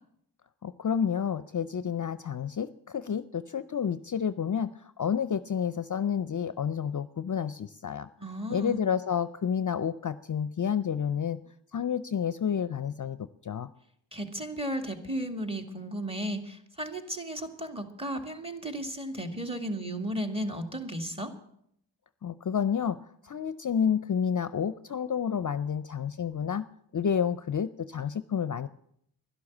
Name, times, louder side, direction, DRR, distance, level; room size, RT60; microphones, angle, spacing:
voice 1, 0.6-8.1 8.5-11.4 11.7-13.2 13.4-13.7 22.2-26.6 26.9-28.7, left 7 dB, 45° left, 14 dB, 0.5 m, -30 dB
voice 2, 8.2-8.8 14.1-21.3, right 1 dB, 15° right, 7 dB, 2.1 m, -34 dB
11.5 x 11.5 x 7.2 m, 0.71 s
cardioid pair, 60°, 44 cm